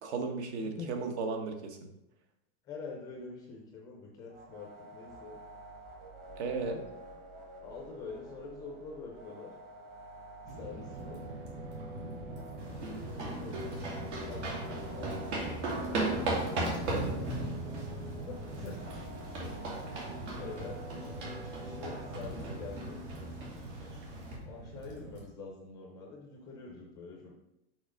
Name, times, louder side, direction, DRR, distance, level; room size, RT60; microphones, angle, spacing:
voice 1, 0.0-1.8 6.4-6.8, right 4 dB, 70° right, 5 dB, 1.2 m, -35 dB
voice 2, 2.6-5.4 7.6-9.5 10.5-11.2 12.9-13.5 13.9-16.3 18.3-18.8 20.0-23.3 24.5-27.3, left 4 dB, 10° left, -1 dB, 0.4 m, -46 dB
sound 1, 4.3-22.6, right 1 dB, 25° right, 0.9 m, -49 dB
sound 2, 10.4-25.2, right 1 dB, 50° right, 2.7 m, -44 dB
sound 3, 12.6-24.4, right 2 dB, 85° right, 2.7 m, -37 dB
6.3 x 5.8 x 3.7 m, 0.87 s
supercardioid pair, 175°, 35 cm